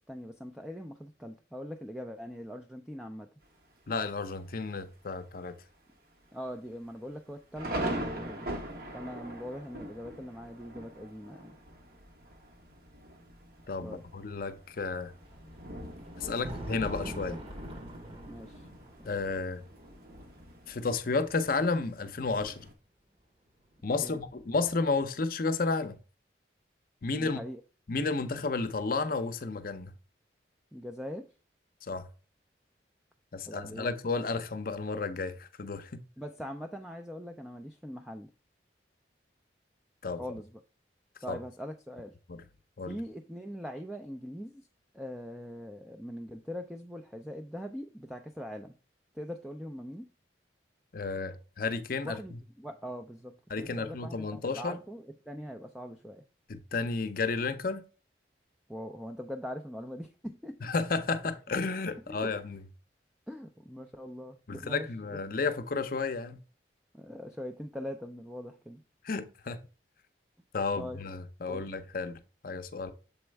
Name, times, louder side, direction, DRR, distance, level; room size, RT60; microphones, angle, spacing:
voice 1, 0.0-3.3 6.3-8.5 8.9-11.6 13.8-14.0 16.3-16.4 18.3-18.7 24.0-24.2 27.1-27.6 30.7-31.2 33.5-33.9 36.2-38.3 40.2-40.6 41.2-42.1 42.9-44.7 44.9-48.7 49.1-50.1 52.0-56.2 58.7-60.6 62.1-62.3 63.3-64.9 66.9-68.8 70.8-71.0 71.5-71.7, equal, 5° right, 0.4 m, -42 dB
Thunder, 3.4-4.0 4.5-4.6 4.9-5.3 5.7-5.8 6.5-22.7, right 1 dB, 55° right, 1.3 m, -42 dB
voice 2, 3.9-5.5 13.7-15.1 16.2-17.4 19.0-19.6 20.7-22.7 23.8-26.0 27.0-27.4 27.9-29.9 31.8-32.1 33.3-36.0 40.0-40.2 41.3-41.4 42.3-42.4 42.8-43.0 50.9-52.4 53.5-54.8 56.5-57.8 60.6-62.6 64.5-66.4 69.0-69.6 70.5-72.9, left 4 dB, 50° left, 0.6 m, -32 dB
Thunder 2, 15.2-22.4 23.5-25.2, right 1 dB, 30° right, 1.1 m, -47 dB
7.0 x 4.3 x 3.3 m
head